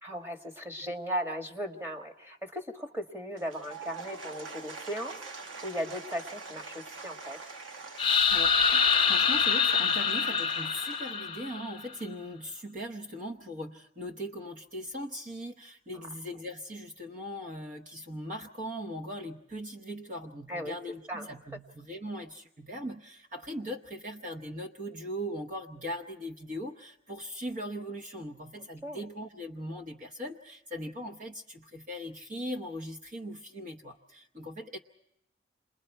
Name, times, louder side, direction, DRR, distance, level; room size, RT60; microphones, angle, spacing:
voice 1, 0.0-7.4 20.5-20.8 21.1-21.3 28.8-29.0, equal, 15° right, 2 dB, 1.7 m, -37 dB
Applause / Crowd, 3.3-11.5, right 4 dB, 85° right, 1.1 m, -45 dB
sound 1, 8.0-11.8, left 6 dB, 25° left, 0.8 m, -25 dB
voice 2, 8.3-34.8, equal, 45° right, 2 dB, 1.0 m, -40 dB
29.0 x 21.0 x 4.5 m, 0.85 s
head